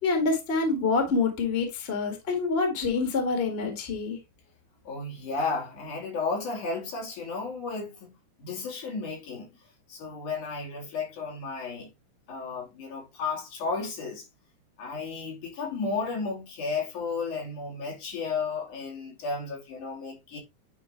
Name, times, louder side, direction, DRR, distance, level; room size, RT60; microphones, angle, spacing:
voice 1, 0.0-4.2, left 4 dB, 25° left, 1.4 m, -26 dB
voice 2, 4.9-8.1 8.4-9.5 9.9-11.9 12.3-14.2 14.8-20.4, left 4 dB, 75° left, 3.9 m, -33 dB
9.5 x 3.9 x 3.1 m
omnidirectional pair, 3.5 m